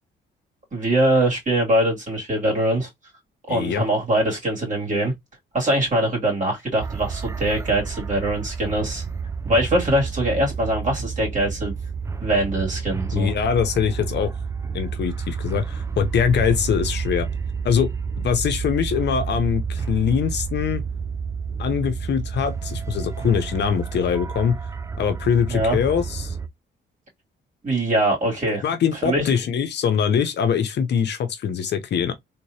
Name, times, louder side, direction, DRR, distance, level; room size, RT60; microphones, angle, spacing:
voice 1, 0.7-2.9 3.5-5.1 5.5-9.0 9.4-11.7 12.2-13.3 25.5-25.8 27.6-28.6 29.0-29.3, right 1 dB, 40° right, 2.6 m, -22 dB
voice 2, 3.5-3.9 13.1-14.3 14.7-17.3 17.6-17.9 18.2-20.8 21.6-24.6 25.0-26.4 28.6-32.1, left 7 dB, 60° left, 0.7 m, -23 dB
sound 1, 6.8-26.5, right 5 dB, 15° right, 0.4 m, -30 dB
3.6 x 2.9 x 2.8 m
cardioid pair, 90°, 20 cm